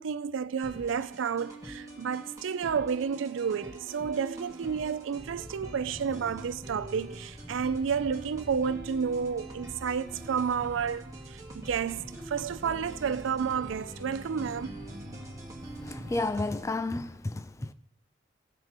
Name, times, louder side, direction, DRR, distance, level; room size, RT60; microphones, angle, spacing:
voice 1, 0.0-11.0 11.3-14.7, right 6 dB, 85° right, 0.4 m, -31 dB
sound 1, 0.6-16.6, right 2 dB, 20° right, 1.6 m, -45 dB
sound 2, 5.1-16.3, equal, 75° left, 3.9 m, -46 dB
voice 2, 15.8-17.7, left 2 dB, 15° left, 0.4 m, -32 dB
17.0 x 6.6 x 3.0 m
head